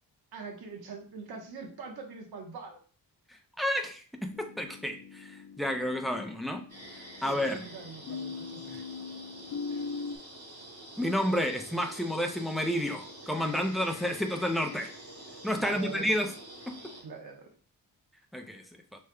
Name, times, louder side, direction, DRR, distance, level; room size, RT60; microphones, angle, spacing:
voice 1, 0.3-2.8 7.2-8.8 15.6-16.1 17.0-17.5, right 5 dB, 85° right, 2 dB, 1.1 m, -43 dB
voice 2, 3.6-6.6 7.2-7.6 11.0-14.9 15.4-16.3 16.7-16.8 18.3-18.8, equal, ahead, 4 dB, 0.6 m, -30 dB
sound 1, 4.3-10.2, left 5 dB, 65° left, 0.7 m, -41 dB
sound 2, 6.7-17.0, right 1 dB, 40° right, 2.1 m, -47 dB
5.2 x 3.3 x 2.2 m, 0.41 s
cardioid pair, 105°, 37 cm